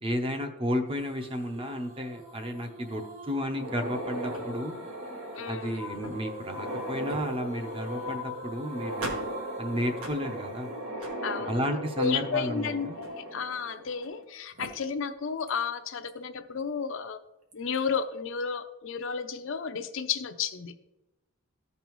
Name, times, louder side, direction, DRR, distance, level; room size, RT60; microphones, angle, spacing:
voice 1, 0.0-4.8 5.5-9.2 9.6-10.7 11.5-13.0, equal, 25° right, 5 dB, 0.7 m, -32 dB
sound 1, 1.0-11.9, equal, 65° right, 2.1 m, -43 dB
air ocean(glitched), 3.5-14.2 14.6-14.7 15.5-15.6 16.1-16.2 17.5-17.8, right 1 dB, 80° right, 1.5 m, -38 dB
voice 2, 5.4-5.8 11.2-11.6 12.0-17.2 17.5-20.7, left 6 dB, 60° left, 9 dB, 0.5 m, -32 dB
14.0 x 5.3 x 3.1 m, 0.99 s
head